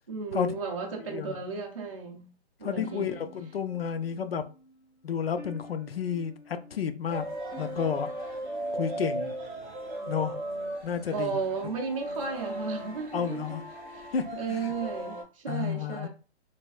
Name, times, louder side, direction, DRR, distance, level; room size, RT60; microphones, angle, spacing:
voice 1, 0.1-2.3 2.6-3.3 11.1-13.6 13.9-16.1, right 5 dB, 30° right, 0.5 m, -34 dB
voice 2, 1.0-1.4 2.6-4.4 5.0-7.3 7.6-8.1 8.7-9.3 10.1-10.4 10.8-11.4 13.1-13.6 14.1-14.7 15.5-16.1, left 7 dB, 60° left, 0.5 m, -31 dB
sound 1, 2.8-9.9, left 1 dB, 90° left, 1.4 m, -51 dB
sound 2, 7.1-15.2, right 1 dB, 5° right, 0.8 m, -37 dB
3.4 x 3.3 x 2.3 m
hypercardioid pair, 170°, 34 cm